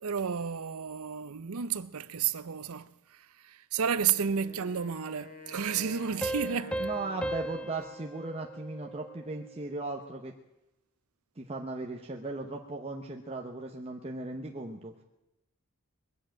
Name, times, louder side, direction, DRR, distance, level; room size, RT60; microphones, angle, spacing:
voice 1, 0.0-6.8, right 7 dB, 70° right, 0.6 m, -32 dB
Wind instrument woodwind instrument, 3.9-8.1, left 2 dB, 40° left, 2.2 m, -48 dB
sound 1, 6.2-9.5, right 1 dB, 5° left, 0.5 m, -37 dB
voice 2, 6.8-10.3 11.4-15.0, right 2 dB, 25° right, 0.9 m, -37 dB
21.5 x 7.6 x 8.9 m
head